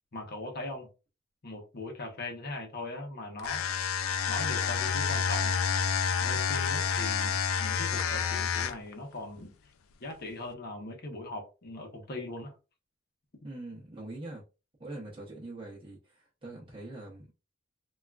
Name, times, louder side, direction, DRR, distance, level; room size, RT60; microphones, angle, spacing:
voice 1, 0.1-0.9 1.4-3.6 4.3-5.6 6.2-9.5 10.0-12.5, left 2 dB, 50° left, 0.8 m, -40 dB
sound 1, 3.4-8.9, left 6 dB, 80° left, 0.4 m, -29 dB
voice 2, 13.4-14.4 14.8-17.4, right 2 dB, 25° right, 0.7 m, -43 dB
3.5 x 2.3 x 2.3 m
head